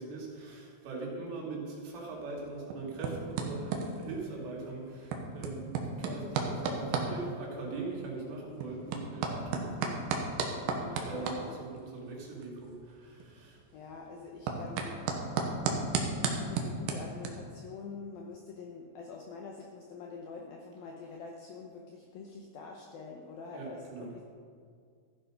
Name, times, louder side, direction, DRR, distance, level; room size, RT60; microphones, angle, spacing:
voice 1, 0.0-10.0 10.8-13.6 23.5-24.1, right 3 dB, 90° right, -4 dB, 5.3 m, -41 dB
sound 1, 2.2-17.3, right 4 dB, 70° right, 2.4 m, -36 dB
voice 2, 10.6-11.6 13.7-15.6 16.1-24.2, left 4 dB, 85° left, 1 dB, 2.1 m, -46 dB
14.5 x 9.8 x 5.0 m, 2.2 s
omnidirectional pair, 5.5 m